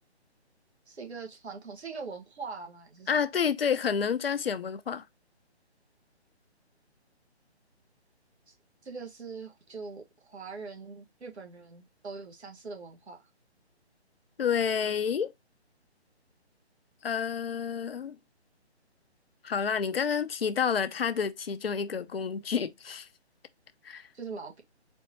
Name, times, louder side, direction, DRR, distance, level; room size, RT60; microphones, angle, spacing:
voice 1, 0.9-3.1 8.5-8.6 8.8-13.2 24.1-24.6, right 4 dB, 70° right, 1.5 m, -42 dB
voice 2, 3.1-5.0 14.4-15.3 17.0-18.1 19.4-23.1 23.8-24.1, left 7 dB, 60° left, 0.6 m, -29 dB
4.4 x 2.7 x 4.1 m
figure-of-eight pair, 150°, 34 cm